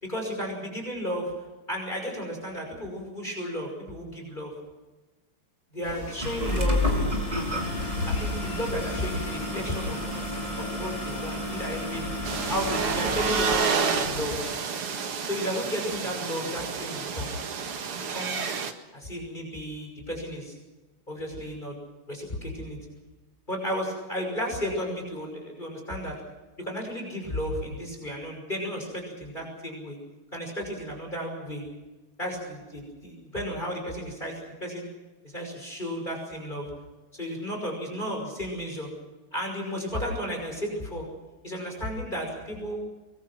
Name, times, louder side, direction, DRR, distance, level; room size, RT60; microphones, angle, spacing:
voice 1, 0.0-1.3 1.7-4.5 5.7-7.0 8.1-10.1 10.6-12.0 12.5-14.3 15.2-17.4 17.9-18.4 18.9-20.6 21.1-21.7 22.1-22.8 23.5-26.2 26.6-30.0 30.3-31.6 32.2-34.9 35.2-36.7 37.1-38.9 39.3-41.1 41.4-42.8, equal, 20° left, 1 dB, 6.0 m, -33 dB
sound 1, 5.8-14.5, left 3 dB, 75° left, 4.2 m, -37 dB
sound 2, 6.2-13.6, left 1 dB, 20° right, 4.6 m, -31 dB
sound 3, 12.2-18.7, right 5 dB, 85° right, 2.7 m, -29 dB
24.0 x 22.0 x 6.2 m, 1.1 s
omnidirectional pair, 2.4 m